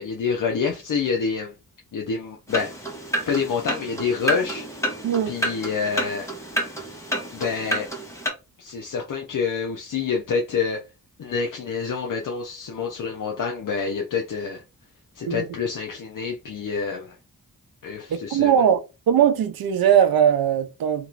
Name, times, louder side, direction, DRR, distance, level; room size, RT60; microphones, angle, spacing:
voice 1, 0.0-1.5 1.9-2.7 3.3-4.7 5.3-6.3 7.3-7.9 8.6-10.8 11.2-14.6 15.2-17.2 17.8-18.7, left 5 dB, 60° left, 0.7 m, -27 dB
sound 1, 2.5-8.3, right 1 dB, 10° left, 1.5 m, -29 dB
voice 2, 18.1-18.8 19.1-21.1, right 9 dB, 80° right, 0.6 m, -20 dB
3.0 x 2.9 x 2.4 m
cardioid pair, 60°, 36 cm